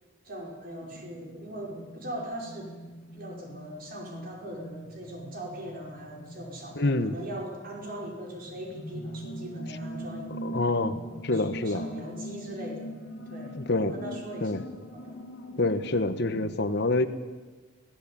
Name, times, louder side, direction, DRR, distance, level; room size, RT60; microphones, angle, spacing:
voice 1, 0.2-2.7 3.1-10.5 11.3-12.9 13.2-14.6 14.9-15.2 15.5-15.8, right 1 dB, 45° right, 0 dB, 5.2 m, -40 dB
sound 1, 0.8-16.5, equal, 85° left, 2.6 m, -42 dB
voice 2, 6.7-7.1 10.4-11.0 11.2-11.8 13.5-13.9 14.4-14.6 15.6-17.1, left 2 dB, 55° left, 10 dB, 1.3 m, -26 dB
25.0 x 17.5 x 8.8 m, 1.3 s
head